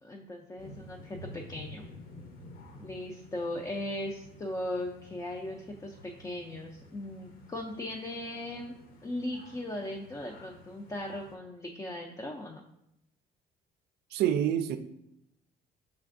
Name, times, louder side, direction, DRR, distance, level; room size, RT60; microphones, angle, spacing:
voice 1, 0.0-1.9 2.8-8.7 9.0-12.6, left 1 dB, 20° left, 1 dB, 0.4 m, -38 dB
sound 1, 0.6-11.4, left 1 dB, 55° left, 0.7 m, -51 dB
voice 2, 14.1-14.8, right 10 dB, 75° right, 10 dB, 0.4 m, -27 dB
5.7 x 3.3 x 2.5 m, 0.81 s
cardioid pair, 110°, 17 cm